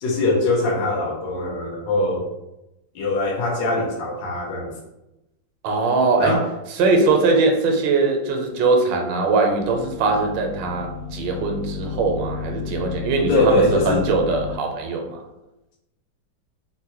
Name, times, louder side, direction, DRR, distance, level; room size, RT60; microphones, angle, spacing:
voice 1, 0.0-2.3 2.9-4.7 6.2-6.4 13.3-14.0, left 2 dB, 80° left, -1 dB, 1.4 m, -22 dB
voice 2, 5.6-6.4 6.7-15.2, right 3 dB, 85° right, 2 dB, 1.3 m, -21 dB
electronic noise amplifier, 9.6-14.6, left 6 dB, 55° right, 0.3 m, -33 dB
3.6 x 2.1 x 2.8 m, 0.93 s
omnidirectional pair, 2.0 m